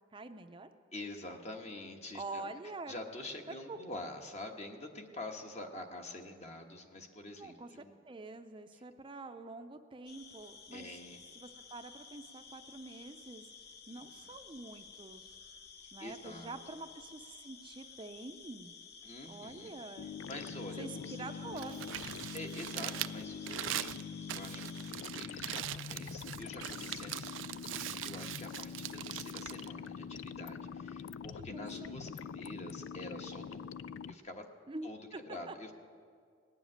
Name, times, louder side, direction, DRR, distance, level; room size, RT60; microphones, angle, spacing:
voice 1, 0.1-0.7 2.1-3.0 3.7-3.8 7.4-10.9 11.4-13.5 13.9-15.4 15.9-18.7 19.3-20.1 20.8-21.8 31.4-32.0 34.7-35.6, right 2 dB, 25° right, 8 dB, 0.5 m, -46 dB
voice 2, 0.9-2.5 2.8-7.9 10.7-11.2 13.9-14.3 16.0-16.6 19.0-19.7 20.3-21.3 22.3-33.6 34.1-34.5 34.8-35.7, left 1 dB, 35° left, 3 dB, 1.3 m, -47 dB
sound 1, 10.1-24.9, left 5 dB, 55° left, 0.9 m, -53 dB
sound 2, 20.0-34.1, left 6 dB, 90° left, 0.3 m, -44 dB
Crumpling crinkling, 21.4-30.5, right 13 dB, 90° right, 0.4 m, -42 dB
18.5 x 7.3 x 9.9 m, 2.1 s
head